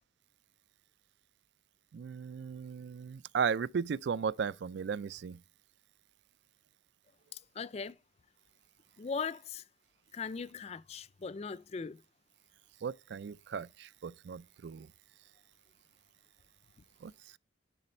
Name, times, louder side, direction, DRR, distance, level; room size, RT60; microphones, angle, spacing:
voice 1, 1.9-5.4 12.8-14.9 17.0-17.1, right 6 dB, 60° right, 0.3 m, -36 dB
voice 2, 7.3-7.9 9.0-9.6 10.1-12.0, left 5 dB, 35° left, 0.4 m, -39 dB
11.0 x 4.0 x 4.3 m
head